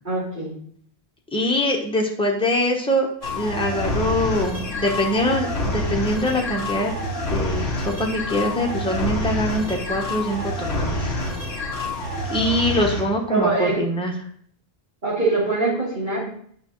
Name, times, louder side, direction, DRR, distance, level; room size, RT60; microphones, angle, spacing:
voice 1, 0.0-0.5 13.3-13.8 15.0-16.2, right 3 dB, 50° right, -11 dB, 3.3 m, -23 dB
voice 2, 1.3-6.9 7.2-11.1 11.5-11.6 12.3-14.1, left 1 dB, 5° left, 0 dB, 1.0 m, -23 dB
sound 1, 3.2-13.0, left 1 dB, 90° right, 4.2 m, -27 dB
9.5 x 5.6 x 3.1 m, 0.63 s
omnidirectional pair, 1.0 m